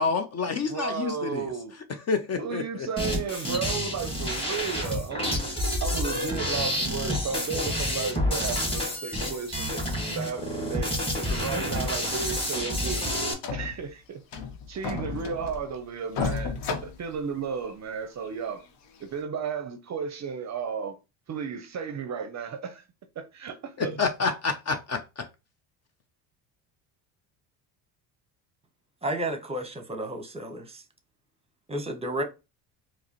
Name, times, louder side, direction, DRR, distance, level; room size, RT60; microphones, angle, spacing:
voice 1, 0.0-1.4 2.1-2.9 23.8-25.2, left 4 dB, 35° left, 0.5 m, -28 dB
voice 2, 0.7-1.7 2.4-5.5 5.8-11.0 11.3-13.1 13.5-14.2 14.7-18.6 19.0-21.0 21.3-22.9 23.2-24.0, right 6 dB, 35° right, 0.6 m, -34 dB
sound 1, 3.0-13.3, left 1 dB, 10° left, 1.3 m, -29 dB
sound 2, 12.1-12.2 12.6-12.7 13.0-13.1 13.4-13.9 14.3-15.8 16.1-17.7 18.2-18.3 18.9-19.0, left 5 dB, 65° left, 0.9 m, -33 dB
voice 3, 29.0-30.8 31.7-32.2, right 1 dB, 15° right, 0.8 m, -32 dB
4.7 x 2.0 x 2.9 m
supercardioid pair, 80°, 47 cm